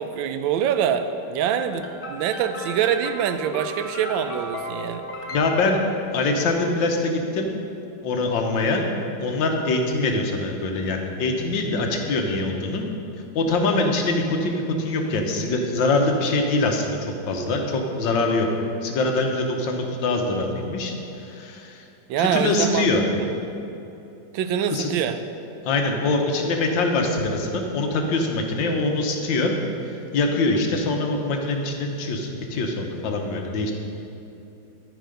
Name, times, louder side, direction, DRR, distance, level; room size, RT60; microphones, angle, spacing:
voice 1, 0.0-5.1 22.1-22.9 23.2-23.4 24.3-25.2, right 8 dB, 80° right, 9 dB, 1.3 m, -25 dB
sound 1, 1.7-6.3, left 1 dB, 55° left, 1.3 m, -36 dB
voice 2, 5.3-5.8 6.1-7.5 8.0-8.8 9.2-12.8 13.4-18.5 18.8-20.9 21.2-21.8 22.2-23.0 24.7-24.9 25.7-29.5 30.1-33.7, left 2 dB, 75° left, 2 dB, 1.6 m, -23 dB
13.5 x 4.7 x 5.2 m, 2.9 s
omnidirectional pair, 2.1 m